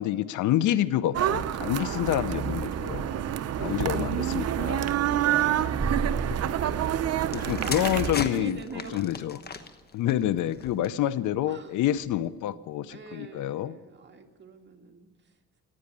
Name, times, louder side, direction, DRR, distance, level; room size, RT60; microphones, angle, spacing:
voice 1, 0.0-3.2 3.6-4.9 7.3-8.6 8.9-9.4 9.9-13.7, left 12 dB, 80° left, 17 dB, 0.6 m, -28 dB
sound 1, 1.1-8.1, right 10 dB, 55° right, 0.7 m, -28 dB
voice 2, 1.7-2.4 3.2-8.0 8.3-9.1 11.5-11.8 12.1-12.2 12.9-15.6, right 5 dB, 35° right, 3 dB, 1.9 m, -46 dB
sound 2, 5.8-8.2, right 4 dB, 15° right, 0.6 m, -34 dB
sound 3, 7.3-11.1 11.9-12.2, left 4 dB, 30° left, 1.2 m, -37 dB
15.5 x 9.5 x 8.6 m, 1.3 s
cardioid pair, 90°, 30 cm